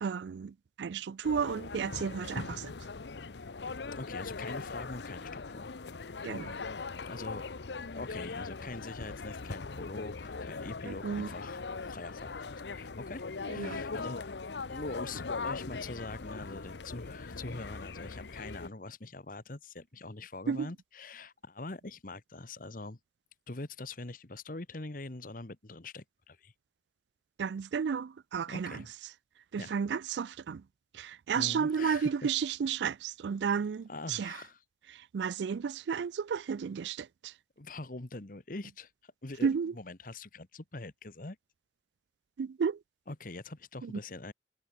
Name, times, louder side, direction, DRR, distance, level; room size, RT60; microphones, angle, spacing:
voice 1, 0.0-2.7 6.2-6.6 10.9-11.3 13.6-13.8 20.5-20.7 27.4-28.8 29.5-30.6 30.9-34.4 34.9-37.3 39.4-39.7 42.4-42.8 43.8-43.9, right 6 dB, 80° right, 0.4 m, -33 dB
sound 1, 1.2-18.7, left 4 dB, 80° left, 0.8 m, -40 dB
voice 2, 3.9-5.7 7.1-7.5 7.9-14.2 14.7-23.0 23.5-26.5 28.5-28.9 29.6-29.7 31.3-32.3 33.9-34.6 37.6-41.4 43.1-44.3, left 2 dB, 50° left, 1.3 m, -43 dB
head